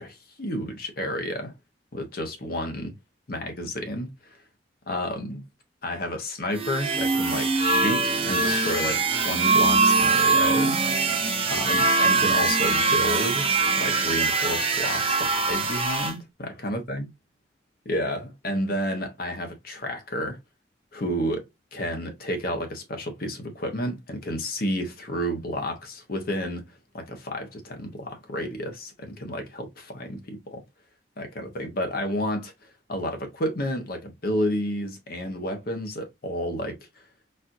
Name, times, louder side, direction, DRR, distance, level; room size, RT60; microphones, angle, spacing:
voice 1, 0.0-1.5 1.9-2.9 3.3-4.4 4.9-5.4 5.8-10.8 11.5-13.5 13.8-17.1 17.8-20.4 20.9-26.6 26.9-30.6 31.2-36.8, equal, 55° left, 0.9 m, -31 dB
sound 1, 6.5-16.1, right 4 dB, 30° right, 0.7 m, -22 dB
4.2 x 2.5 x 2.5 m
head